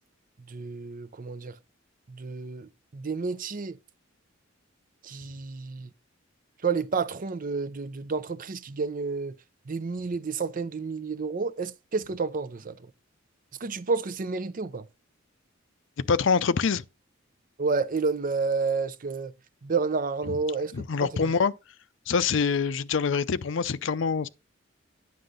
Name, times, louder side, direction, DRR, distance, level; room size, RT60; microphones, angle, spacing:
voice 1, 0.5-1.5 2.1-3.8 5.0-5.9 6.6-9.4 9.7-12.8 13.6-14.9 17.6-19.3 19.6-20.8 21.0-21.3, right 4 dB, 45° right, 0.6 m, -30 dB
voice 2, 16.1-16.8 20.3-20.4 20.7-21.5 22.1-24.3, left 5 dB, 65° left, 0.5 m, -25 dB
9.6 x 6.4 x 3.8 m
head